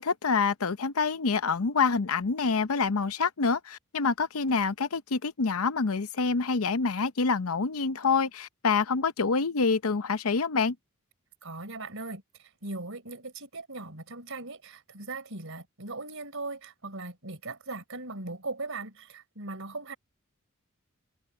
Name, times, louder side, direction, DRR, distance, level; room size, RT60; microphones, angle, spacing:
voice 1, 0.0-10.8, left 4 dB, 85° left, 0.8 m, -26 dB
voice 2, 11.4-20.0, right 3 dB, 65° right, 5.2 m, -39 dB
head